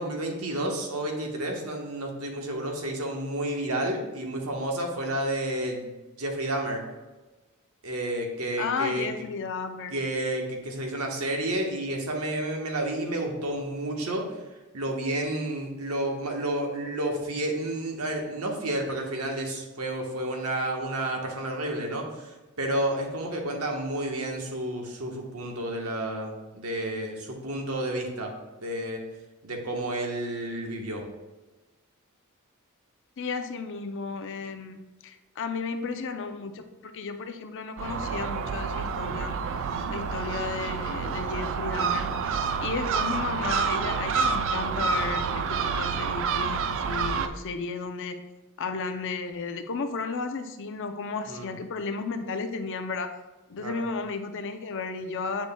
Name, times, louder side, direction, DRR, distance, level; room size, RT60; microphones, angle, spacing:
voice 1, 0.0-5.9 6.2-6.8 7.8-9.1 9.9-14.4 14.7-28.3 28.6-29.0 29.4-31.1 39.6-39.9 51.3-51.5 53.6-53.8, right 1 dB, 80° right, 1 dB, 1.2 m, -31 dB
voice 2, 8.6-9.9 33.2-39.3 39.9-48.2 48.6-53.1 53.5-55.5, left 4 dB, 60° left, 7 dB, 0.5 m, -33 dB
Gull seagull, 37.8-47.3, right 5 dB, 60° right, 0.4 m, -28 dB
8.3 x 6.2 x 2.2 m, 1.1 s
head